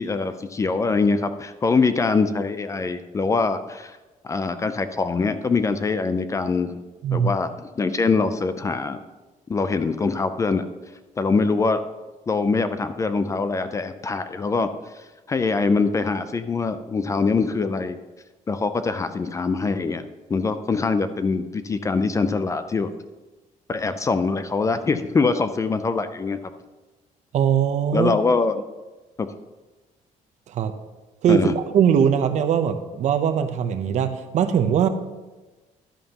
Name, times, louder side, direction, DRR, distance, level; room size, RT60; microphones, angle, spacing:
voice 1, 0.0-4.0 4.2-6.8 7.1-9.0 9.5-10.6 11.2-11.8 12.3-14.7 14.9-18.0 18.5-22.9 23.7-26.4 27.9-28.6 29.2-29.3 31.3-31.5, left 4 dB, 20° left, 11 dB, 0.4 m, -23 dB
voice 2, 27.3-28.1 30.5-30.7 31.2-34.9, right 8 dB, 55° right, 9 dB, 0.7 m, -21 dB
11.5 x 10.5 x 2.9 m, 1.2 s
cardioid pair, 150°, 14 cm